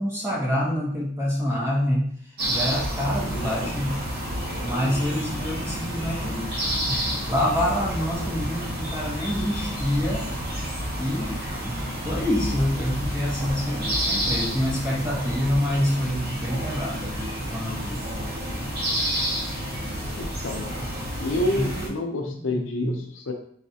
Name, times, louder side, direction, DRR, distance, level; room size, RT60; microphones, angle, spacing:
voice 1, 0.0-2.1 2.5-3.9 4.6-6.5 6.9-10.2 11.0-11.8 12.0-17.1 17.5-18.0 20.8-20.9 21.6-22.0 22.5-23.0, equal, 15° right, -4 dB, 1.0 m, -27 dB
sound 1, 2.4-21.9, equal, 55° right, 1.0 m, -29 dB
voice 2, 20.2-20.7 21.2-23.3, left 2 dB, 70° left, 3 dB, 0.5 m, -28 dB
4.1 x 3.1 x 2.7 m, 0.62 s
head